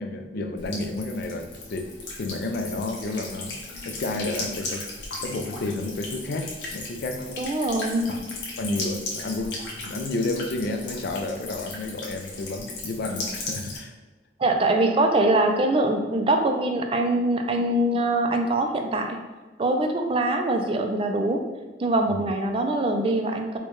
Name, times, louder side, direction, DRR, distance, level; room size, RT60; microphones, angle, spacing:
voice 1, 0.0-1.9 2.2-3.6 3.8-4.9 5.2-7.4 8.1-8.3 8.6-13.9 22.1-22.2, left 2 dB, 60° left, 6 dB, 0.4 m, -31 dB
Buzz / Water tap faucet / Trickle dribble, 0.6-13.8, left 2 dB, 75° left, 0.8 m, -36 dB
voice 2, 7.4-8.1 14.4-19.2 19.6-21.4 21.8-23.6, right 2 dB, 30° right, 4 dB, 0.3 m, -23 dB
4.5 x 2.2 x 3.0 m, 1.3 s
head